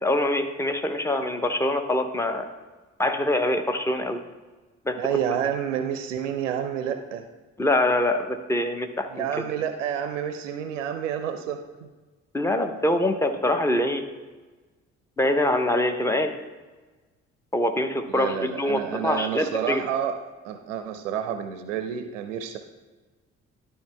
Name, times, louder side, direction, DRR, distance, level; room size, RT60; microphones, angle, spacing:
voice 1, 0.0-2.5 3.0-4.2 4.8-5.0 7.6-9.3 12.3-14.0 15.2-16.3 17.5-19.8, left 1 dB, 5° left, 7 dB, 0.8 m, -24 dB
voice 2, 5.0-7.3 9.1-11.9 18.1-20.2 20.4-22.6, right 9 dB, 75° right, 7 dB, 0.6 m, -29 dB
11.5 x 4.9 x 3.3 m, 1.3 s
figure-of-eight pair, 40°, 37 cm